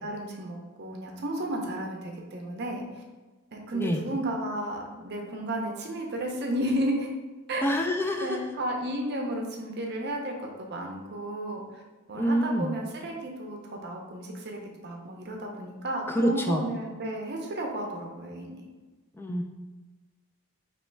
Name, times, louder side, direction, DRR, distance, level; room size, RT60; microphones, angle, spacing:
voice 1, 0.0-2.8 3.5-7.1 7.5-7.7 8.2-11.8 12.1-18.6, right 1 dB, 50° right, 1 dB, 0.6 m, -33 dB
voice 2, 7.6-8.4 12.1-12.7 16.1-16.6 19.2-19.4, equal, 10° left, 3 dB, 0.3 m, -26 dB
3.1 x 3.0 x 4.4 m, 1.3 s
head